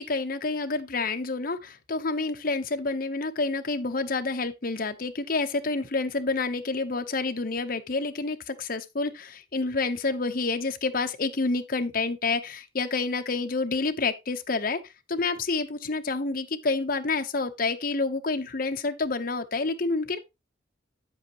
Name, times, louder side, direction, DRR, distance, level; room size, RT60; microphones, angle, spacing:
voice 1, 0.0-14.8 15.1-20.2, left 3 dB, 50° left, 0.9 m, -28 dB
8.9 x 8.0 x 3.0 m
head